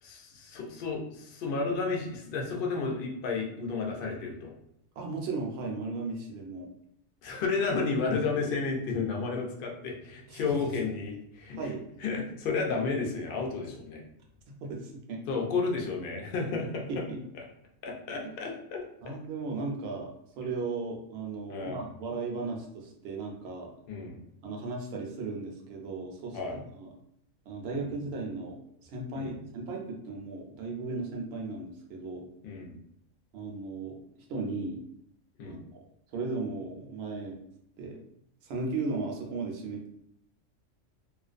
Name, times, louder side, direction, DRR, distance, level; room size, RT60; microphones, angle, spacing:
voice 1, 0.0-4.5 7.2-11.6 12.0-14.0 15.3-16.9 17.8-19.1 21.5-21.8 23.9-24.2 26.3-26.6 27.7-27.9 29.1-29.4 32.4-32.8 35.4-35.6, left 4 dB, 60° left, 0 dB, 0.6 m, -32 dB
voice 2, 5.0-6.7 10.3-10.9 11.5-11.8 14.6-15.2 16.9-17.2 19.0-23.7 24.4-26.9 27.5-32.2 33.3-34.0 34.3-34.8 35.4-35.6 36.1-37.4 37.8-38.0 38.4-39.9, right 3 dB, 65° right, 0 dB, 0.7 m, -36 dB
2.4 x 2.2 x 2.4 m, 0.74 s
omnidirectional pair, 1.3 m